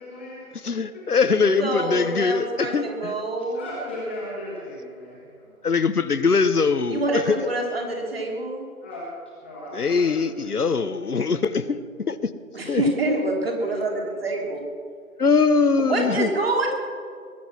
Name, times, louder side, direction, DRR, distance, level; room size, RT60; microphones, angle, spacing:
voice 1, 0.0-0.4 0.9-1.7 2.1-2.9 3.5-5.6 8.8-9.1 9.4-10.6 13.4-14.4, left 1 dB, 10° left, -6 dB, 1.5 m, -38 dB
voice 2, 0.7-2.8 5.6-7.5 9.7-11.8 12.1-12.3 12.7-12.8 15.2-16.3, left 4 dB, 85° left, 14 dB, 1.0 m, -22 dB
voice 3, 1.6-3.6 6.9-8.7 12.5-14.6 15.8-16.7, right 2 dB, 40° right, 0 dB, 3.1 m, -26 dB
21.0 x 7.9 x 7.4 m, 2.2 s
figure-of-eight pair, 165°, 44 cm